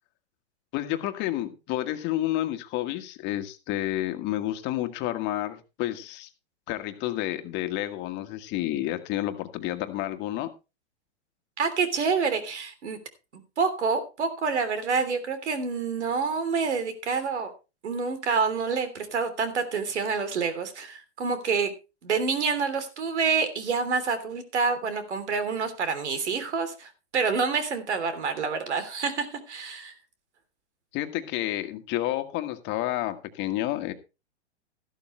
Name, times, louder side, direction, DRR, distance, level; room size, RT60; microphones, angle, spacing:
voice 1, 0.7-6.3 6.7-10.5 30.9-33.9, left 14 dB, 35° left, 1.6 m, -30 dB
voice 2, 11.6-13.0 13.3-17.5 17.8-21.7 22.0-29.9, right 5 dB, 85° right, 3.3 m, -27 dB
14.0 x 12.0 x 3.2 m
hypercardioid pair, 135°, 33 cm